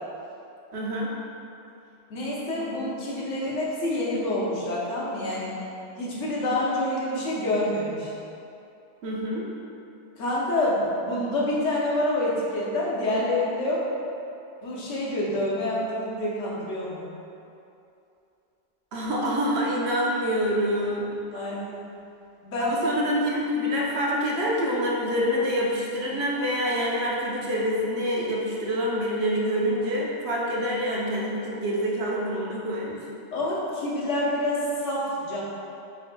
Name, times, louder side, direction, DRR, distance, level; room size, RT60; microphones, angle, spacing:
voice 1, 0.7-1.1 9.0-9.5 18.9-21.1 22.6-33.0, equal, 65° right, -4 dB, 0.9 m, -26 dB
voice 2, 2.1-5.5 6.0-8.1 10.2-13.8 14.6-17.2 21.3-21.7 22.4-22.8 33.3-35.4, left 1 dB, 80° left, -6 dB, 1.2 m, -27 dB
7.3 x 2.7 x 2.2 m, 2.7 s
omnidirectional pair, 1.2 m